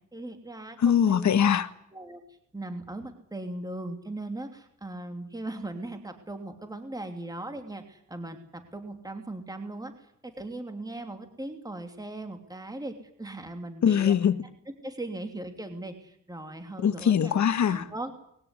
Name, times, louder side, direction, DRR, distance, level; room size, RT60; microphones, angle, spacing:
voice 1, 0.1-1.3 1.9-2.2 2.5-14.1 14.8-17.3 17.7-18.1, right 2 dB, 10° right, 6 dB, 2.9 m, -39 dB
voice 2, 0.8-1.7 13.8-14.4 16.8-17.9, left 8 dB, 60° left, 12 dB, 1.6 m, -22 dB
21.5 x 16.5 x 9.9 m, 0.71 s
wide cardioid pair, 130°, 32 cm